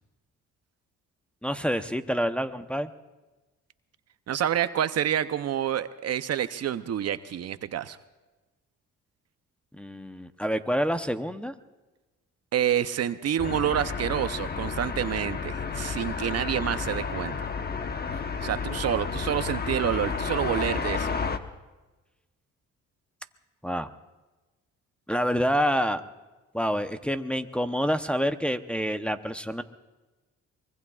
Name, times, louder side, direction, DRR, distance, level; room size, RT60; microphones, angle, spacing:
voice 1, 1.4-2.9 9.8-11.5 23.6-23.9 25.1-26.0 26.5-29.6, equal, 5° left, 7 dB, 0.8 m, -27 dB
voice 2, 4.3-8.0 12.5-17.3 18.4-21.1, right 10 dB, 55° right, 12 dB, 0.7 m, -28 dB
sound 1, 13.4-21.4, left 5 dB, 30° left, 1.0 m, -31 dB
24.0 x 22.0 x 2.4 m, 1.2 s
cardioid pair, 90°, 30 cm